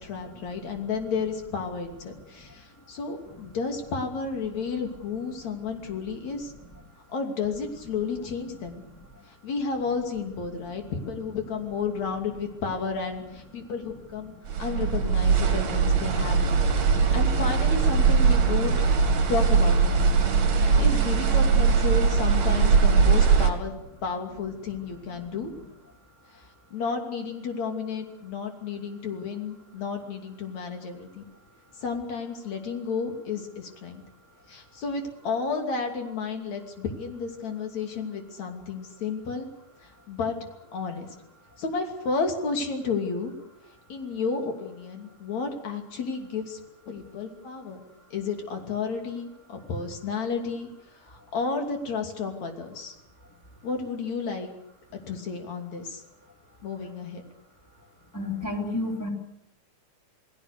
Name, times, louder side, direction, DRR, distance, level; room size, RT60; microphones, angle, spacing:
voice 1, 0.0-6.5 7.1-8.8 9.3-14.3 14.6-16.5 16.9-18.8 19.3-20.1 20.6-23.7 24.0-25.5 26.4-31.2 31.8-34.0 34.5-39.5 39.8-40.4 40.7-41.1 41.6-43.3 43.9-46.6 46.9-47.8 48.1-50.7 51.1-52.9 53.6-54.5 55.1-56.0 56.6-57.2, left 5 dB, 55° left, 4 dB, 4.0 m, -32 dB
sound 1, 14.5-23.5, right 5 dB, 55° right, 3.4 m, -21 dB
voice 2, 58.1-59.1, left 2 dB, 5° left, 0 dB, 3.5 m, -30 dB
29.0 x 19.0 x 6.7 m, 0.81 s
omnidirectional pair, 4.0 m